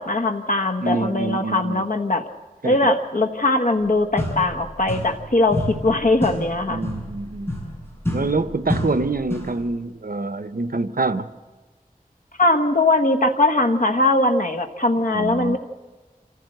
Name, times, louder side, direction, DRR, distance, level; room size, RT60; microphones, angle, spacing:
voice 1, 0.0-2.2 2.6-6.8 12.4-15.6, left 2 dB, 65° left, 6 dB, 1.2 m, -20 dB
voice 2, 0.8-1.8 2.6-2.8 6.7-7.5 8.1-11.3 15.1-15.6, right 3 dB, 75° right, 12 dB, 0.8 m, -26 dB
sound 1, 3.8-3.9 4.2-5.3 5.5-9.6, left 1 dB, 15° left, 7.3 m, -29 dB
26.0 x 15.0 x 7.9 m, 1.3 s
wide cardioid pair, 40°, 15 cm